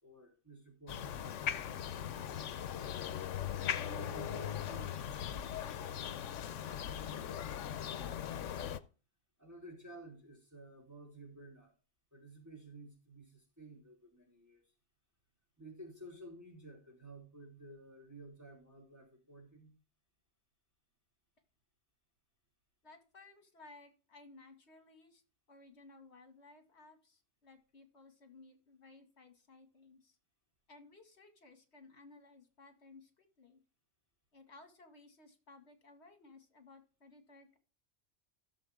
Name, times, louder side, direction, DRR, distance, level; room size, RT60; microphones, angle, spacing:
voice 1, 0.0-2.8 3.9-8.5 9.4-11.7 12.1-14.6 15.6-19.7, right 2 dB, 15° right, -3 dB, 4.2 m, -54 dB
sound 1, 0.9-8.8, left 9 dB, 80° left, 1.0 m, -39 dB
voice 2, 22.8-25.2 25.5-30.2 30.7-33.6 34.3-37.6, left 3 dB, 60° left, 6 dB, 2.4 m, -59 dB
16.5 x 7.2 x 3.6 m, 0.36 s
omnidirectional pair, 1.3 m